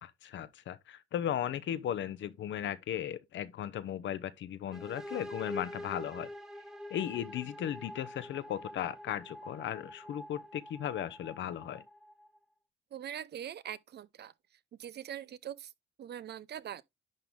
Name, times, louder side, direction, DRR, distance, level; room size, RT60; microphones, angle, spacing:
voice 1, 0.0-6.3 6.9-11.8, left 10 dB, 70° left, 0.9 m, -36 dB
sound 1, 4.7-12.4, left 1 dB, ahead, 1.1 m, -46 dB
voice 2, 12.9-15.7 16.0-16.8, right 10 dB, 55° right, 0.6 m, -43 dB
11.0 x 3.8 x 3.7 m
cardioid pair, 90°, 20 cm